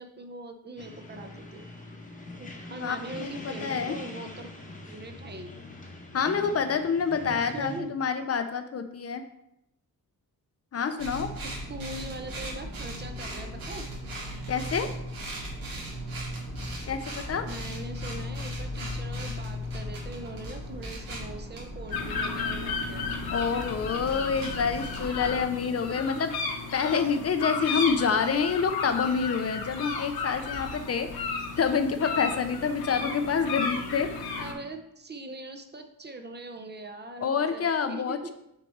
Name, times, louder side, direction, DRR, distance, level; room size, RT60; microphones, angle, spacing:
voice 1, 0.0-1.7 2.4-4.5 4.8-5.5 7.2-7.9 11.4-13.9 17.5-23.1 34.4-38.3, right 2 dB, 30° right, 5 dB, 0.5 m, -41 dB
sound 1, 0.8-7.8, left 2 dB, 20° left, 0.9 m, -43 dB
voice 2, 2.7-3.9 6.1-9.2 10.7-11.3 14.5-14.9 16.9-17.5 23.3-26.3 26.7-34.1 37.2-38.3, left 6 dB, 45° left, 9 dB, 0.4 m, -27 dB
sound 2, 11.0-25.4, equal, 75° right, 2.0 m, -37 dB
sound 3, 21.9-34.5, left 4 dB, 90° left, 1.1 m, -34 dB
6.5 x 4.3 x 4.2 m, 0.82 s
wide cardioid pair, 160°, 36 cm